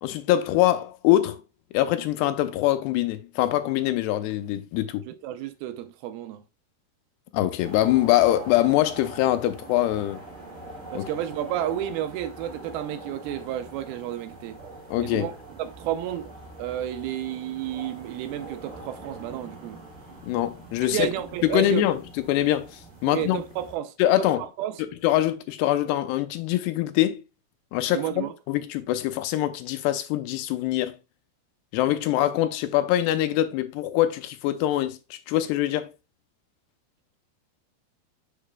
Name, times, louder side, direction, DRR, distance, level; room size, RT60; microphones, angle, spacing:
voice 1, 0.0-1.4 1.7-5.0 7.3-10.2 10.9-11.1 14.9-15.3 20.2-21.1 21.4-23.4 24.0-24.5 24.8-27.2 27.7-31.0 31.7-35.9, left 13 dB, 85° left, 2.8 m, -24 dB
voice 2, 5.1-6.4 10.9-14.6 15.0-15.3 15.6-16.3 16.6-19.8 20.9-21.8 23.1-24.3 24.6-24.7 27.9-28.3, right 11 dB, 80° right, 2.4 m, -31 dB
sound 1, 7.6-23.7, right 2 dB, 30° right, 1.8 m, -44 dB
7.3 x 7.0 x 2.3 m
omnidirectional pair, 4.6 m